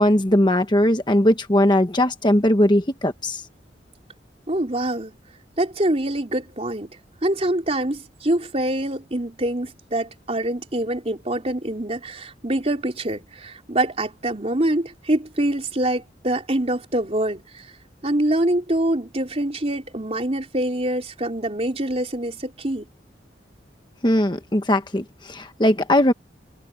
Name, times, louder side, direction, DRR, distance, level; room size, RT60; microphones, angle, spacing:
voice 1, 0.0-3.4 24.0-26.1, left 1 dB, 25° left, 1.3 m, -19 dB
voice 2, 4.5-5.2 5.6-17.7 18.0-22.9, right 1 dB, 35° right, 3.7 m, -25 dB
head